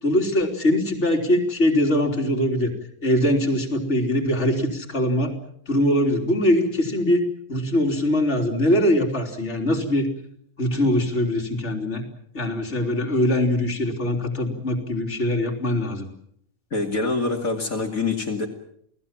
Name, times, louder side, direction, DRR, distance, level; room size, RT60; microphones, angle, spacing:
voice 1, 0.0-2.7 3.0-5.3 5.7-7.2 7.5-10.1 10.6-12.0 12.3-16.1, left 1 dB, 50° left, 2 dB, 3.8 m, -22 dB
voice 2, 16.7-18.5, left 3 dB, 70° left, 0 dB, 3.1 m, -25 dB
29.0 x 19.0 x 7.5 m, 0.69 s
omnidirectional pair, 1.5 m